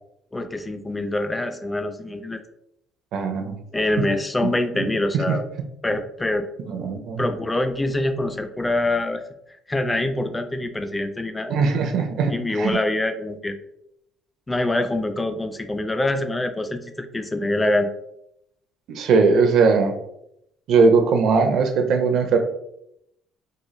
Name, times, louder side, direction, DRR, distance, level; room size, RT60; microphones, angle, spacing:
voice 1, 0.3-2.4 3.7-5.4 5.8-6.5 7.2-9.2 9.7-11.5 12.3-13.6 14.5-17.9, left 1 dB, 10° left, 8 dB, 0.3 m, -25 dB
voice 2, 3.1-3.5 5.3-5.4 6.7-7.2 11.5-12.8 18.9-20.0 20.7-22.4, right 4 dB, 55° right, 5 dB, 0.5 m, -19 dB
3.7 x 2.4 x 3.0 m, 0.79 s
cardioid pair, 145°, 0 cm